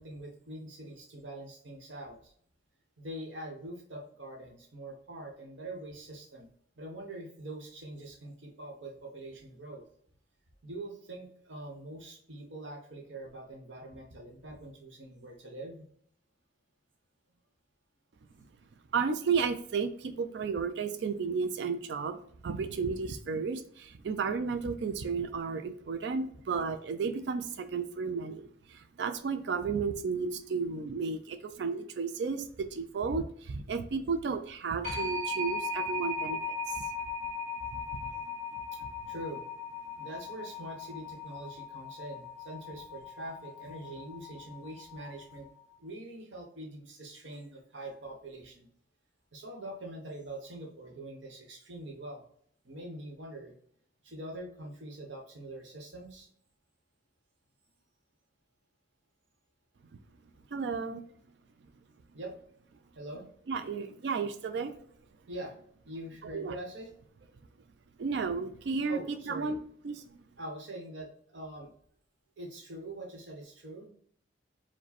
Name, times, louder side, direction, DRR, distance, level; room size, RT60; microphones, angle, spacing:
voice 1, 0.0-2.3 3.0-6.5 6.8-9.8 10.6-15.8 38.7-38.8 39.1-39.4 40.0-45.5 45.8-48.7 49.3-52.3 52.6-53.5 54.0-56.3 62.1-62.3 62.9-63.3 65.3-65.5 65.9-66.9 68.9-69.5 70.4-71.7 72.4-73.9, right 1 dB, 90° right, 2 dB, 1.1 m, -44 dB
voice 2, 18.9-36.9 37.7-38.1 60.5-61.1 63.5-64.8 66.3-66.5 68.0-69.6 69.8-70.2, right 5 dB, 65° right, 9 dB, 0.4 m, -33 dB
sound 1, 34.8-45.5, left 3 dB, 40° right, 1.6 m, -38 dB
4.8 x 2.2 x 4.1 m, 0.62 s
head